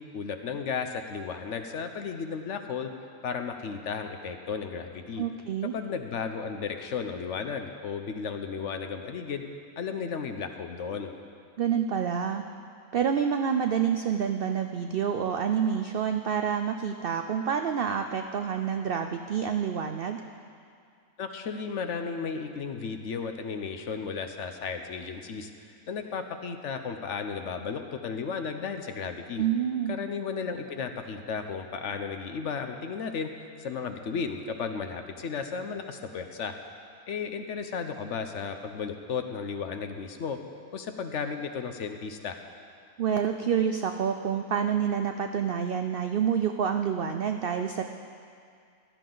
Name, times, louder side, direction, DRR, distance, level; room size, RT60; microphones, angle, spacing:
voice 1, 0.0-2.9 3.2-5.2 5.7-9.4 9.8-11.1 21.2-25.5 25.9-29.4 29.9-33.3 33.6-36.5 37.1-40.4 40.7-42.4, left 5 dB, 60° left, 6 dB, 0.9 m, -34 dB
voice 2, 5.2-5.7 11.6-12.4 12.9-20.2 29.4-29.9 43.0-47.8, right 7 dB, 85° right, 6 dB, 0.5 m, -28 dB
15.0 x 12.5 x 3.9 m, 2.3 s
omnidirectional pair, 1.6 m